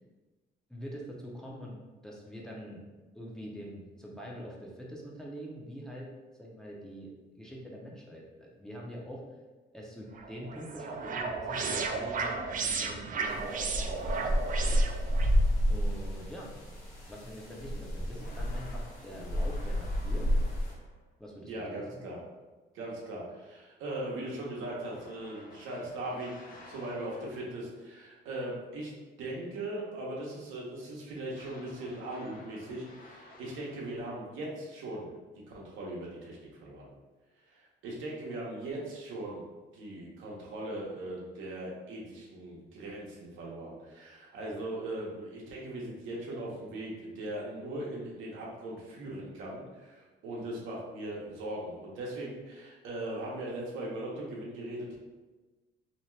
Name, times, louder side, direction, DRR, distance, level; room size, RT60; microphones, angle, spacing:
voice 1, 0.7-2.9 3.1-6.1 6.4-7.1 7.4-9.2 9.7-14.4 15.7-16.5 17.1-20.3 21.2-22.0, equal, 5° left, -3 dB, 0.6 m, -44 dB
sound 1, 10.1-15.3, right 4 dB, 45° right, 0.4 m, -34 dB
sound 2, 13.2-20.7, equal, 90° left, 1.1 m, -30 dB
sound 3, 18.2-21.1 24.9-27.8 31.3-34.4, left 2 dB, 45° left, 0.5 m, -53 dB
voice 2, 21.5-22.2 22.7-28.9 29.2-35.1 35.5-36.9 37.5-39.4 39.7-55.0, right 1 dB, 90° right, -4 dB, 0.8 m, -39 dB
2.7 x 2.2 x 3.2 m, 1.2 s
cardioid pair, 90°, 20 cm